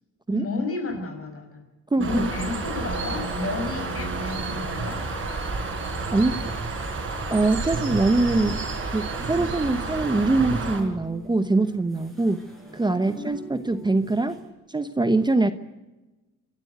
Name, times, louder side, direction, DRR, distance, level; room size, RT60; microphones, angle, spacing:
voice 1, 0.3-1.6 2.0-5.1 13.0-13.4, left 3 dB, 50° left, 5 dB, 5.8 m, -32 dB
voice 2, 1.9-2.3 6.1-6.5 7.3-12.4 12.7-14.4 14.7-15.5, right 2 dB, 15° right, 10 dB, 0.9 m, -23 dB
Bird, 2.0-10.8, right 3 dB, 40° right, 4.2 m, -30 dB
sound 1, 9.2-14.5, right 1 dB, ahead, 7.1 m, -40 dB
26.0 x 12.5 x 8.0 m, 1.1 s
cardioid pair, 90°, 30 cm